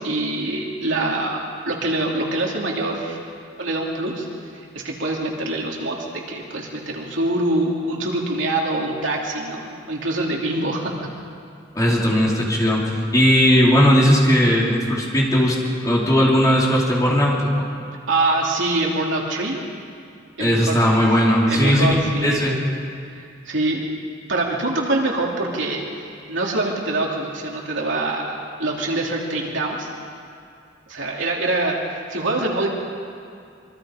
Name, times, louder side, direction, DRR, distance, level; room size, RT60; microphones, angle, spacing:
voice 1, 0.0-3.2 3.6-4.3 4.7-10.9 18.1-19.6 20.4-20.8 21.5-22.6 23.1-23.9 24.3-25.8 26.3-29.9 30.9-31.8 32.1-32.7, right 2 dB, 70° right, -1 dB, 3.2 m, -24 dB
voice 2, 11.7-15.6 15.8-17.6 20.4-22.6, equal, 20° left, -5 dB, 4.3 m, -17 dB
26.0 x 24.0 x 5.2 m, 2.4 s
head